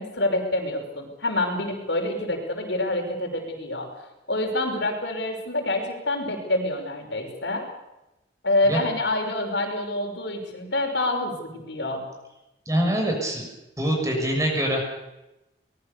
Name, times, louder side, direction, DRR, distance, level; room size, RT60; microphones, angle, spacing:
voice 1, 0.0-3.9 4.3-7.6 8.4-12.1, left 2 dB, 80° left, 2 dB, 5.8 m, -27 dB
voice 2, 12.6-13.5 13.8-14.8, right 1 dB, 15° right, 1 dB, 6.6 m, -24 dB
24.5 x 20.5 x 6.9 m, 0.96 s
head